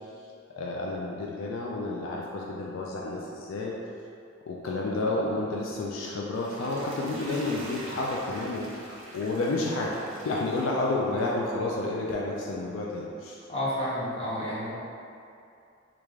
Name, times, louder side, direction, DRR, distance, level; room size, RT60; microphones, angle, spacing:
voice 1, 0.6-3.7 4.4-13.4, left 2 dB, 75° left, -3 dB, 0.4 m, -30 dB
Water / Toilet flush, 6.1-11.4 11.9-12.0, right 1 dB, 75° right, 0.7 m, -43 dB
voice 2, 13.5-14.7, left 1 dB, 30° left, -8 dB, 0.8 m, -30 dB
3.5 x 2.4 x 3.1 m, 2.5 s
head